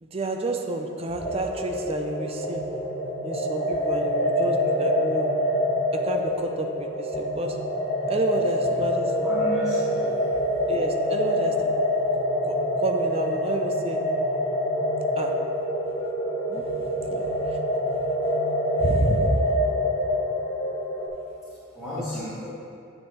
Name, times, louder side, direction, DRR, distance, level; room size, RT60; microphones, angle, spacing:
voice 1, 0.0-2.6 3.2-5.3 5.9-7.6 8.1-9.3 10.7-11.5 12.5-14.0 15.2-15.3 16.5-16.7 17.1-17.6 18.8-19.4, right 2 dB, 30° right, 4 dB, 0.5 m, -29 dB
sound 1, 1.2-21.1, left 1 dB, 30° left, 1.2 m, -26 dB
voice 2, 9.2-10.3 21.7-22.5, equal, 5° right, -15 dB, 1.8 m, -34 dB
10.5 x 6.5 x 3.0 m, 2.5 s
head